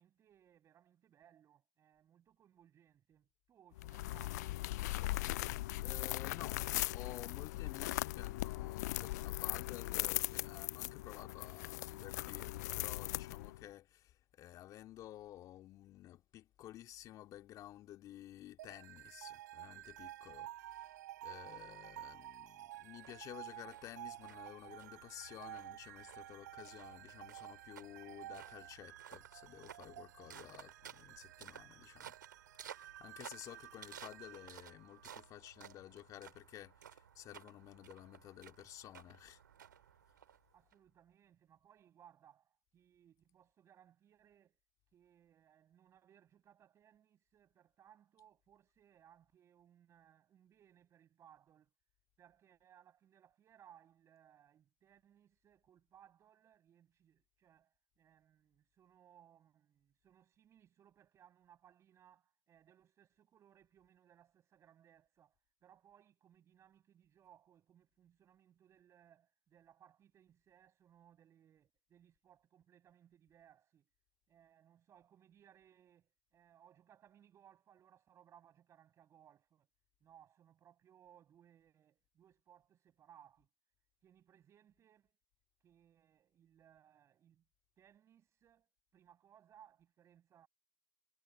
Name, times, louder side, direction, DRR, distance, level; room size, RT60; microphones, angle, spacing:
voice 1, 0.0-4.6 40.5-44.6 44.9-51.7 52.2-65.4 65.6-73.9 74.3-79.7 80.0-83.5 84.0-85.2 85.6-87.4 87.8-90.5, right 10 dB, 30° right, 7.5 m, -66 dB
sound 1, 3.8-13.6, left 18 dB, 60° left, 0.4 m, -39 dB
voice 2, 5.8-6.6 6.9-32.2 32.6-39.4, left 13 dB, 35° left, 2.7 m, -53 dB
sound 2, 18.6-35.7, right 14 dB, 65° right, 5.2 m, -52 dB
sound 3, 23.0-40.7, right 9 dB, 80° right, 3.6 m, -57 dB
hypercardioid pair, 110°, 10 cm